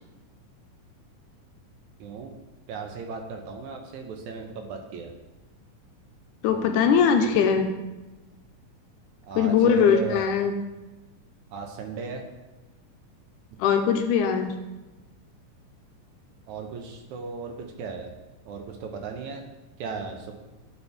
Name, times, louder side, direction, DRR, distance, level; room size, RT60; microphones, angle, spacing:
voice 1, 2.0-2.3 2.7-5.1 9.3-10.3 11.5-12.2 16.5-18.1 18.5-19.4 19.8-20.3, right 4 dB, 75° right, 3 dB, 2.0 m, -35 dB
voice 2, 6.4-7.7 9.4-10.6 13.6-14.5, left 6 dB, 80° left, 5 dB, 2.1 m, -21 dB
11.5 x 5.6 x 3.4 m, 1.1 s
omnidirectional pair, 3.7 m